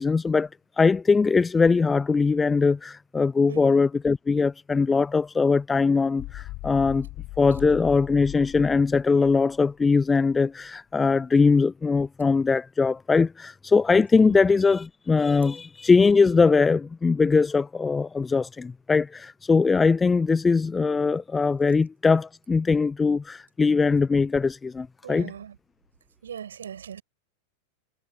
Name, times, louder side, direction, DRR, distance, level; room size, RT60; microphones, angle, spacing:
voice 1, 0.0-7.1 7.4-25.3, left 4 dB, 15° left, 0.6 m, -21 dB
sound 1, 6.2-10.4, left 20 dB, 40° left, 7.7 m, -39 dB
voice 2, 25.0-25.6 26.2-27.0, right 8 dB, 65° right, 6.2 m, -39 dB
figure-of-eight pair, 90°, 0 cm